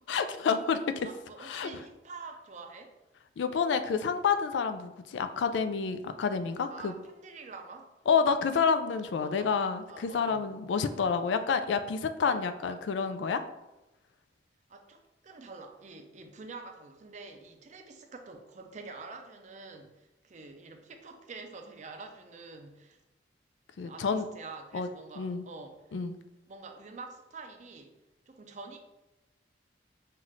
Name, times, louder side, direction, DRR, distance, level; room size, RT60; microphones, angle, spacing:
voice 1, 0.1-1.1 1.4-1.7 3.4-6.9 8.1-13.4 23.8-24.3 24.7-24.9 25.2-25.4 25.9-26.2, left 5 dB, 80° left, 9 dB, 0.4 m, -29 dB
voice 2, 1.0-3.0 6.7-7.9 9.2-9.6 9.9-10.5 12.2-12.8 14.7-23.0 23.8-25.9 26.5-27.9 28.3-28.8, right 4 dB, 40° right, 5 dB, 0.5 m, -47 dB
5.6 x 2.5 x 3.1 m, 0.99 s
head